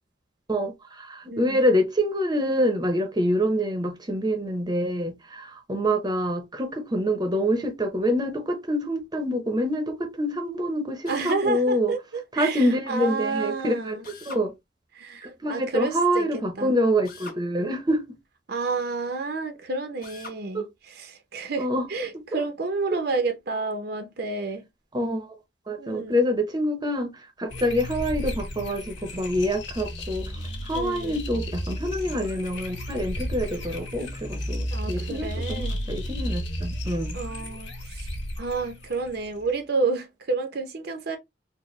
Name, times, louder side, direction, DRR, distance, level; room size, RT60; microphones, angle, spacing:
voice 1, 0.5-11.9 12.3-14.0 14.3-14.5 15.2-18.2 20.5-20.7 21.6-21.9 24.9-25.4 25.7-30.3 30.6-37.1, equal, 20° right, 0.7 m, -26 dB
voice 2, 1.3-1.6 11.1-14.1 14.9-16.7 18.5-24.7 25.8-26.2 30.7-31.2 34.7-35.8 37.1-38.1 38.4-41.2, right 3 dB, 55° right, 0.7 m, -30 dB
Drill, 11.0-11.5 14.0-14.5 17.0-17.4 20.0-20.4, left 4 dB, 50° left, 1.2 m, -42 dB
sound 1, 27.5-39.5, equal, 80° left, 1.5 m, -33 dB
4.1 x 2.1 x 3.1 m
head